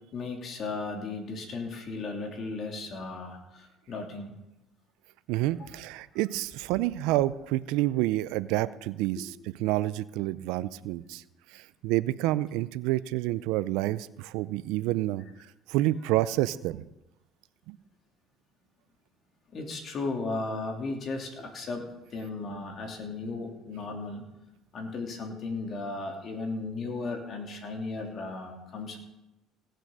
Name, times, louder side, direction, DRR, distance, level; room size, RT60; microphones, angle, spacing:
voice 1, 0.1-4.3 9.1-9.2 19.5-24.2 24.7-29.0, left 3 dB, 45° left, 3 dB, 2.9 m, -35 dB
voice 2, 5.3-9.3 9.6-11.2 11.5-15.2 15.7-16.8 17.7-17.8, right 16 dB, 80° right, 17 dB, 0.5 m, -28 dB
17.5 x 6.3 x 6.6 m, 0.94 s
supercardioid pair, 95°, 0 cm